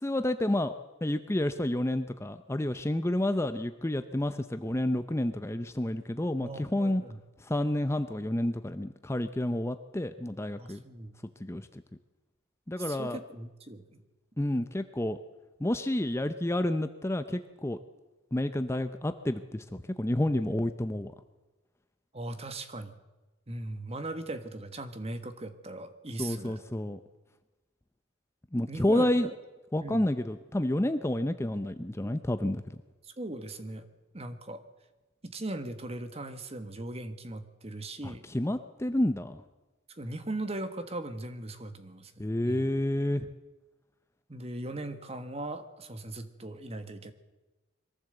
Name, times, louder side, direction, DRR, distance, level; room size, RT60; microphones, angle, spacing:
voice 1, 0.0-0.7 1.0-7.0 7.4-10.8 11.4-11.8 12.7-13.2 14.4-15.2 15.6-17.8 18.3-21.1 26.2-27.0 28.5-29.3 29.7-32.8 38.0-39.4 42.2-43.3, left 1 dB, 15° left, 9 dB, 0.6 m, -30 dB
voice 2, 6.3-7.2 10.6-11.2 12.8-14.0 22.1-22.9 23.5-26.6 28.7-29.1 29.8-30.1 33.0-33.9 34.1-34.6 35.2-38.2 39.9-42.7 44.3-47.1, right 2 dB, 30° right, 10 dB, 1.4 m, -39 dB
22.5 x 14.5 x 7.9 m, 1.1 s
head